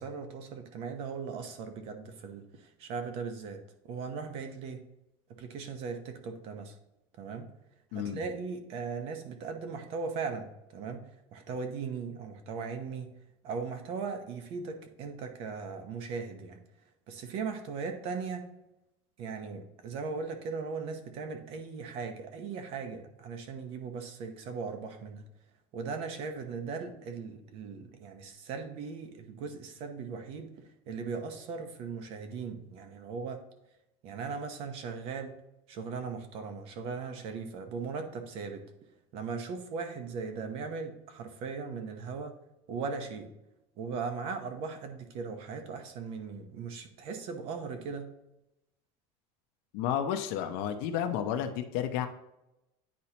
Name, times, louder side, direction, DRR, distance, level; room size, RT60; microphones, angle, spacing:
voice 1, 0.0-4.8 5.4-6.8 7.2-7.5 7.9-13.1 13.4-16.6 17.1-18.5 19.2-25.2 25.7-30.5 30.9-33.4 34.0-35.3 35.7-38.6 39.1-42.3 42.7-43.3 43.8-48.1, right 5 dB, 45° right, 7 dB, 0.9 m, -38 dB
voice 2, 7.9-8.2 49.7-52.1, left 9 dB, 60° left, 8 dB, 0.7 m, -31 dB
9.6 x 4.2 x 2.9 m, 0.88 s
cardioid pair, 175°, 14 cm